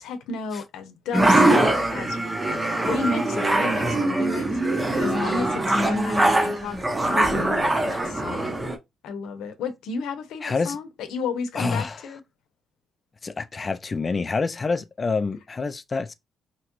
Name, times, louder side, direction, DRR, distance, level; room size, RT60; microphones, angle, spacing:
voice 1, 0.0-6.8 7.0-8.6 9.0-12.2, left 4 dB, 85° left, 0.7 m, -32 dB
sound 1, 1.1-8.8, right 1 dB, 20° right, 0.8 m, -22 dB
voice 2, 10.4-10.8 11.5-12.0 13.2-16.1, left 4 dB, 30° left, 0.4 m, -27 dB
3.0 x 2.3 x 3.0 m
cardioid pair, 90°, 0 cm